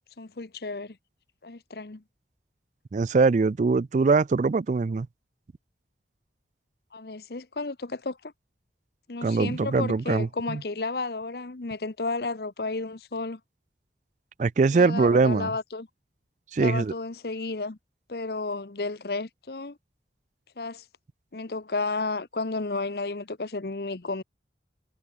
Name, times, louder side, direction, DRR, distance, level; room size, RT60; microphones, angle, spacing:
voice 1, 0.2-1.0 1.4-2.0 6.9-8.3 9.1-13.4 14.7-15.9 16.6-17.8 18.1-19.8 20.6-20.8 21.3-24.2, left 3 dB, 60° left, 0.9 m, -32 dB
voice 2, 2.9-5.1 9.2-10.6 14.4-15.5 16.5-16.9, right 4 dB, 40° right, 0.3 m, -22 dB
head